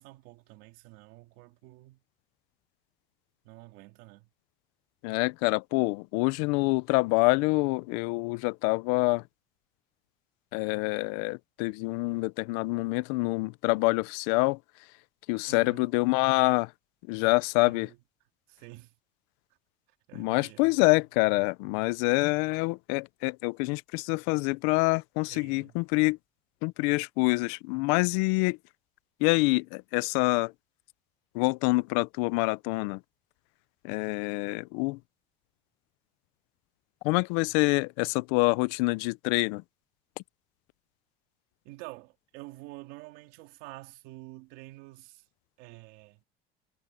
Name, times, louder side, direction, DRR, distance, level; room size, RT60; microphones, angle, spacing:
voice 1, 0.0-2.0 3.4-4.3 15.5-15.8 17.2-17.3 17.6-18.0 18.5-18.9 20.1-21.0 25.3-25.8 41.6-45.2 45.6-46.2, right 20 dB, 75° right, 2.9 m, -48 dB
voice 2, 5.0-9.2 10.5-14.6 15.3-16.7 17.1-17.9 20.2-26.2 26.6-28.6 29.2-30.5 31.3-33.0 33.8-35.0 37.0-39.6, left 26 dB, 80° left, 0.6 m, -26 dB
cardioid pair, 155°, 20 cm